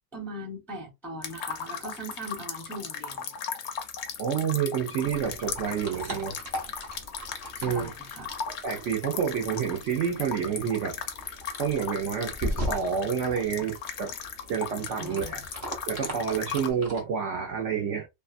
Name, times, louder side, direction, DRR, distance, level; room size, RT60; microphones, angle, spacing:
voice 1, 0.1-3.3 7.6-8.4 15.0-15.4, right 1 dB, ahead, 0.6 m, -40 dB
sound 1, 1.2-16.7, left 7 dB, 65° left, 0.7 m, -37 dB
voice 2, 4.2-6.4 7.6-7.9 8.6-11.0 11.6-14.2 14.5-15.4 15.9-18.1, right 7 dB, 65° right, 0.8 m, -29 dB
sound 2, 5.0-17.0, equal, 35° right, 0.6 m, -40 dB
2.7 x 2.3 x 2.4 m
omnidirectional pair, 1.6 m